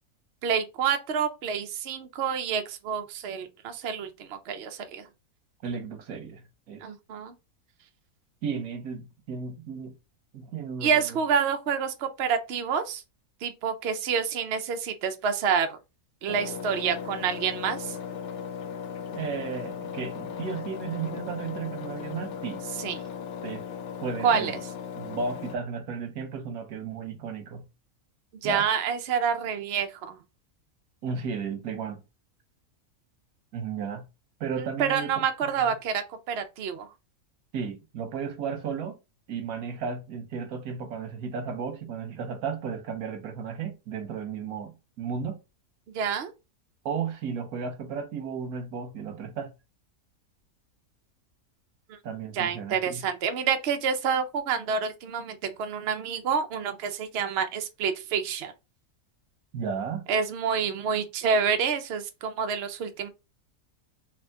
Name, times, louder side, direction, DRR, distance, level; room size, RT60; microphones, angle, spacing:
voice 1, 0.4-5.1 6.8-7.3 10.8-13.0 13.4-15.8 16.2-18.0 22.8-22.9 24.2-24.6 28.4-30.2 34.6-36.9 45.9-46.3 52.3-58.5 60.1-63.1, right 6 dB, 60° right, 0.8 m, -28 dB
voice 2, 5.6-6.8 8.4-9.9 10.3-11.2 19.1-22.6 23.4-23.7 24.0-24.6 25.0-27.6 28.4-28.7 31.0-32.0 33.5-34.0 34.4-35.1 35.4-35.7 37.5-39.0 39.3-45.4 46.8-49.5 52.0-53.0 59.5-60.0, right 6 dB, 85° right, 1.3 m, -34 dB
Engine, 16.3-25.6, left 7 dB, 65° left, 0.8 m, -37 dB
3.6 x 3.0 x 3.4 m
omnidirectional pair, 1.5 m